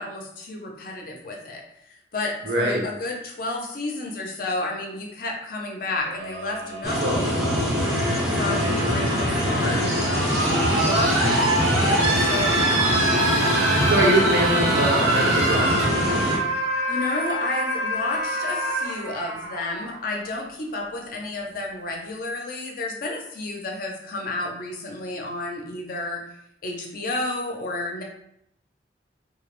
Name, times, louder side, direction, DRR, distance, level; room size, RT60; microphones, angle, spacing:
voice 1, 0.0-7.7 8.3-9.8 10.3-11.5 11.8-13.0 16.9-26.2 26.6-28.0, left 2 dB, 50° left, 1 dB, 0.5 m, -31 dB
voice 2, 2.5-2.8 7.0-7.2 13.9-15.9, right 2 dB, 60° right, -1 dB, 0.5 m, -23 dB
sound 1, 6.0-20.0 21.3-21.4, right 1 dB, 90° right, 0.8 m, -25 dB
sound 2, 6.8-16.4, equal, ahead, 0.5 m, -24 dB
2.2 x 2.0 x 2.9 m, 0.75 s
head